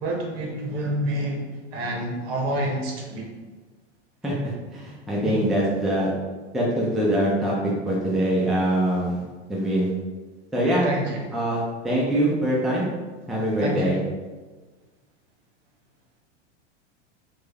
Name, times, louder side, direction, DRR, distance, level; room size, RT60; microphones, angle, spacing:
voice 1, 0.0-3.3 5.2-5.5 10.8-11.4 13.6-14.0, right 1 dB, 55° right, 0 dB, 0.9 m, -28 dB
voice 2, 4.2-6.1 6.5-9.2 9.5-9.9 10.5-10.9 11.3-12.9 13.3-14.0, right 1 dB, ahead, -5 dB, 0.4 m, -23 dB
3.2 x 2.3 x 3.4 m, 1.3 s
hypercardioid pair, 110°, 36 cm